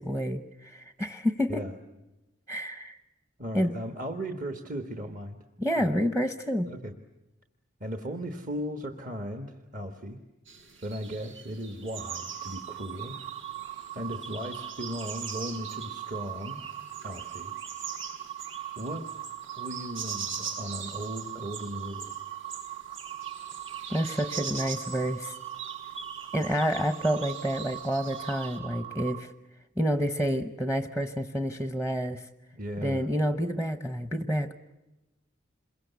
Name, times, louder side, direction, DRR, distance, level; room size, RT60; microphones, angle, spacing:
voice 1, 0.0-1.6 2.5-3.0 3.5-3.7 5.6-6.7 23.9-25.3 26.3-29.3 29.8-32.3 32.8-34.5, equal, 10° right, 9 dB, 0.8 m, -29 dB
voice 2, 3.4-5.4 5.7-5.9 6.7-6.9 7.8-10.2 10.8-13.2 13.9-16.6 17.0-17.5 18.7-19.1 19.5-22.1 32.5-33.1, equal, 40° right, 6 dB, 1.4 m, -37 dB
sound 1, 10.5-28.6, right 6 dB, 90° right, 7.4 m, -42 dB
sound 2, 12.0-29.2, right 13 dB, 25° right, 1.1 m, -40 dB
27.5 x 22.5 x 8.2 m, 1.0 s
head